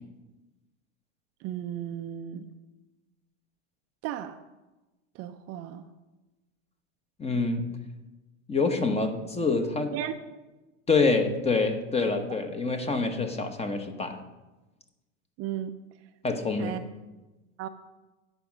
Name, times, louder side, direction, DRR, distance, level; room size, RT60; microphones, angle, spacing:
voice 1, 1.4-2.5 4.0-4.4 5.2-5.8 9.9-10.2 15.4-15.7 16.6-16.8 17.6-17.7, right 11 dB, 45° right, 8 dB, 0.5 m, -34 dB
voice 2, 7.2-7.7 8.5-9.9 10.9-14.2 16.2-16.8, left 3 dB, 15° left, 7 dB, 1.1 m, -26 dB
9.3 x 5.3 x 6.0 m, 1.1 s
hypercardioid pair, 110°, 36 cm